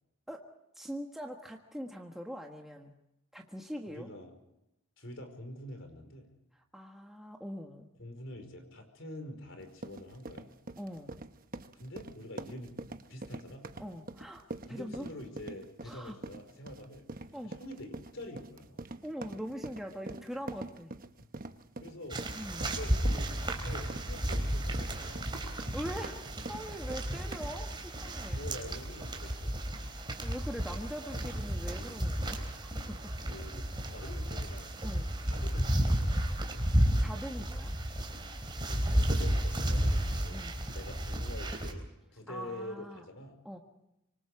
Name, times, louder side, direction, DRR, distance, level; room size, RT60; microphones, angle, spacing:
voice 1, 0.7-3.0 3.3-4.1 6.5-7.9 10.8-11.2 13.8-15.0 15.8-16.2 17.3-17.6 19.0-21.0 22.3-22.7 25.7-28.4 30.2-33.2 34.8-35.1 37.0-37.7 40.3-40.6 42.3-43.0 43.4-43.6, equal, ahead, 1 dB, 1.5 m, -42 dB
voice 2, 3.9-4.3 5.0-6.3 8.0-10.5 11.7-13.7 14.6-17.1 17.4-18.8 21.8-22.2 22.6-25.4 27.1-27.2 28.1-29.8 33.2-34.7 35.2-36.2 38.6-40.4 40.7-41.9 42.1-43.4, left 1 dB, 60° left, 6 dB, 4.9 m, -46 dB
sound 1, 9.6-27.7, right 2 dB, 40° right, 1.0 m, -45 dB
sound 2, 22.1-41.7, right 1 dB, 20° right, 3.7 m, -32 dB
26.5 x 24.0 x 4.9 m, 0.88 s
head